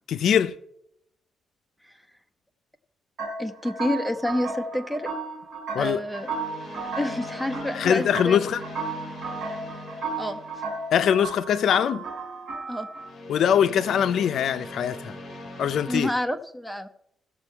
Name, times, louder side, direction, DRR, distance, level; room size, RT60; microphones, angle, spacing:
voice 1, 0.1-0.6 5.7-6.0 7.7-8.6 10.9-12.0 13.3-15.2 15.6-16.1, left 9 dB, 65° left, 0.5 m, -22 dB
sound 1, 3.2-13.1, right 3 dB, 65° right, 3.6 m, -34 dB
voice 2, 3.4-5.1 5.8-6.3 7.0-8.4 10.2-10.4 12.7-12.9 15.9-16.9, left 1 dB, ahead, 0.7 m, -28 dB
sound 2, 4.1-4.4 6.1-11.2 12.9-16.0, left 1 dB, 35° left, 2.3 m, -41 dB
16.5 x 6.8 x 4.5 m
cardioid pair, 150°, 0 cm